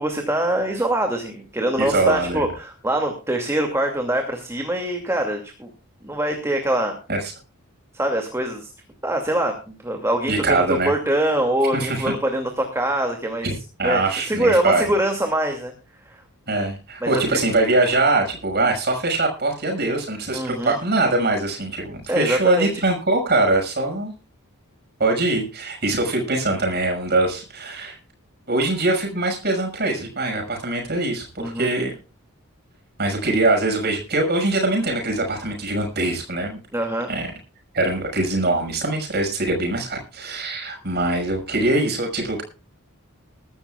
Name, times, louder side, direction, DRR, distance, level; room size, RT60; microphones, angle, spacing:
voice 1, 0.0-5.7 6.0-7.0 7.9-8.7 9.0-13.5 13.8-15.7 16.0-16.2 17.0-17.4 20.3-20.8 22.1-22.8 31.4-31.7 36.7-37.1, right 1 dB, 15° right, 3 dB, 2.5 m, -24 dB
voice 2, 1.8-2.5 7.1-7.3 10.3-10.9 11.7-12.0 13.8-14.8 16.5-24.1 25.0-28.0 28.5-32.0 33.0-36.6 37.1-37.3 37.7-42.4, right 2 dB, 50° right, 3 dB, 5.9 m, -22 dB
22.5 x 12.5 x 2.4 m, 0.34 s
head